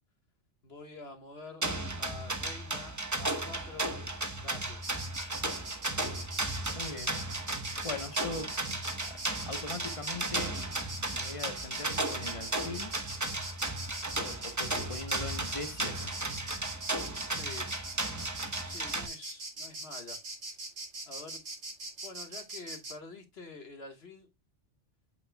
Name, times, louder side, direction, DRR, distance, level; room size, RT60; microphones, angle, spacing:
voice 1, 0.6-1.7 2.0-3.9 4.4-4.8 17.3-17.7 18.6-20.2 21.1-21.4 22.0-24.3, left 3 dB, 60° left, 1.8 m, -47 dB
sound 1, 1.6-19.1, right 2 dB, 15° right, 0.8 m, -35 dB
Insect, 4.8-23.0, right 2 dB, 65° right, 2.5 m, -42 dB
voice 2, 6.7-7.2 7.8-8.8 9.1-9.2 9.4-10.6 11.1-12.9 14.2-16.1, left 3 dB, 30° left, 1.0 m, -41 dB
8.6 x 6.1 x 2.2 m
omnidirectional pair, 1.2 m